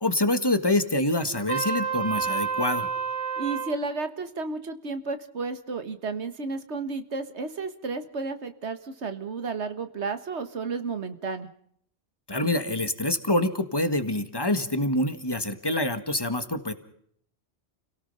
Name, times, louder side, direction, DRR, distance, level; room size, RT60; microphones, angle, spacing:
voice 1, 0.0-2.9 12.3-16.7, left 1 dB, 20° left, 9 dB, 1.7 m, -26 dB
Trumpet, 1.5-3.7, right 6 dB, 30° right, 3.8 m, -29 dB
voice 2, 3.4-11.5, right 4 dB, 80° right, 9 dB, 1.8 m, -32 dB
29.5 x 17.5 x 5.6 m, 0.66 s
omnidirectional pair, 1.1 m